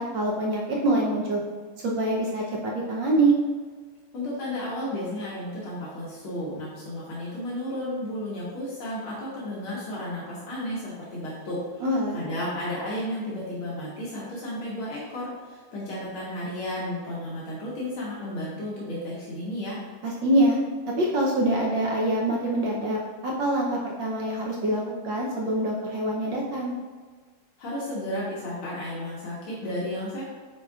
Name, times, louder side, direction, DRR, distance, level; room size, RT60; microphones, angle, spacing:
voice 1, 0.0-1.4 1.8-3.3 11.8-12.2 20.0-20.6 21.0-26.7, right 1 dB, 70° right, -3 dB, 1.4 m, -25 dB
voice 2, 4.1-11.9 12.1-19.8 27.6-30.2, left 1 dB, 85° left, -7 dB, 2.1 m, -33 dB
9.1 x 4.6 x 2.4 m, 1.5 s
omnidirectional pair, 2.3 m